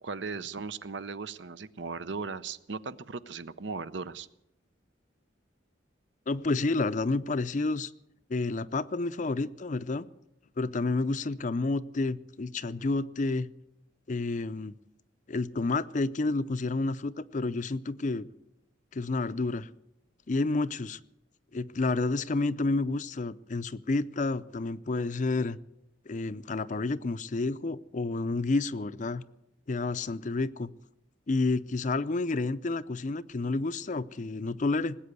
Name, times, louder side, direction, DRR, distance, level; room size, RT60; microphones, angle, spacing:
voice 1, 0.0-4.3, right 4 dB, 70° right, 15 dB, 0.7 m, -37 dB
voice 2, 6.3-7.9 8.3-10.1 10.6-13.5 14.1-14.7 15.3-18.3 18.9-19.7 20.3-21.0 21.5-25.6 26.1-29.2 29.7-30.7 31.3-35.0, left 3 dB, 40° left, 14 dB, 0.5 m, -30 dB
20.0 x 8.7 x 8.2 m, 0.85 s
head